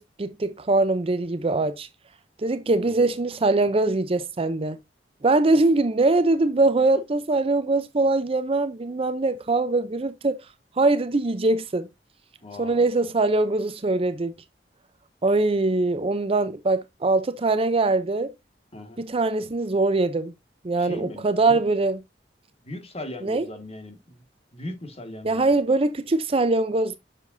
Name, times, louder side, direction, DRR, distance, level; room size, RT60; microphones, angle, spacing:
voice 1, 0.0-1.9 2.4-4.8 5.2-10.4 10.8-11.9 12.6-14.3 15.2-18.3 19.0-20.3 20.6-22.0 23.2-23.5 25.2-27.0, right 2 dB, 35° right, 0.6 m, -22 dB
voice 2, 2.7-3.1 12.4-12.8 18.7-19.0 20.8-21.6 22.6-24.2 24.5-25.5, left 1 dB, 35° left, 1.9 m, -39 dB
7.5 x 6.6 x 2.6 m
head